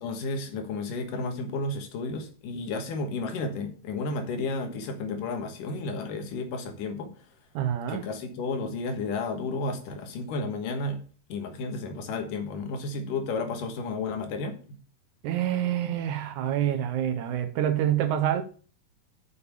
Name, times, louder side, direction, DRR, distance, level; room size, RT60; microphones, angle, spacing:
voice 1, 0.0-7.1 7.9-11.0 11.3-14.6, left 3 dB, 75° left, 2.9 m, -32 dB
voice 2, 7.6-8.1 15.2-18.4, right 11 dB, 75° right, 2.0 m, -27 dB
7.0 x 6.8 x 6.8 m
omnidirectional pair, 3.9 m